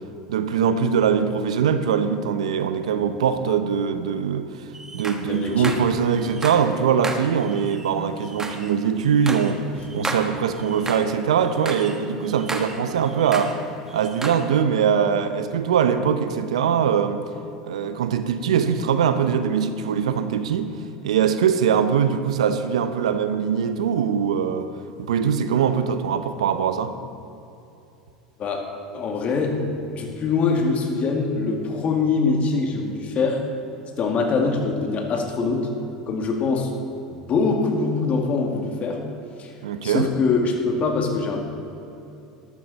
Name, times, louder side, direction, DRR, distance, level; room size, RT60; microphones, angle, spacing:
voice 1, 0.3-4.5 4.9-9.6 9.9-13.6 13.9-17.2 17.6-20.8 21.0-24.7 25.0-26.9 39.6-40.1, right 7 dB, 80° right, 10 dB, 0.7 m, -22 dB
sound 1, 4.7-6.8 7.0-11.1 11.4-13.6 13.9-14.5, right 2 dB, 15° right, 1.3 m, -34 dB
voice 2, 5.2-5.8 7.9-8.0 28.4-28.7 28.9-33.4 34.0-35.7 36.1-36.7 37.1-39.0 39.4-39.5 39.8-41.4, left 4 dB, 40° left, 2 dB, 2.1 m, -23 dB
13.0 x 12.0 x 4.1 m, 2.8 s
hypercardioid pair, 85°, 3 cm